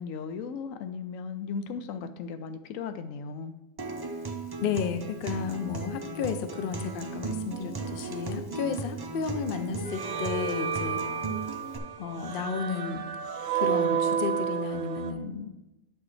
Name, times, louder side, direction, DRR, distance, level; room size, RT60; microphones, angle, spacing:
voice 1, 0.0-3.5 5.2-5.5, left 5 dB, 80° left, 9 dB, 1.0 m, -36 dB
Acoustic guitar, 3.8-11.8, right 4 dB, 30° right, 0.4 m, -37 dB
voice 2, 4.6-11.0 12.0-13.1 13.5-15.5, left 6 dB, 55° left, 9 dB, 0.6 m, -33 dB
sound 1, 9.9-15.1, right 7 dB, 75° right, 0.9 m, -31 dB
8.7 x 6.0 x 3.2 m, 0.99 s
omnidirectional pair, 1.4 m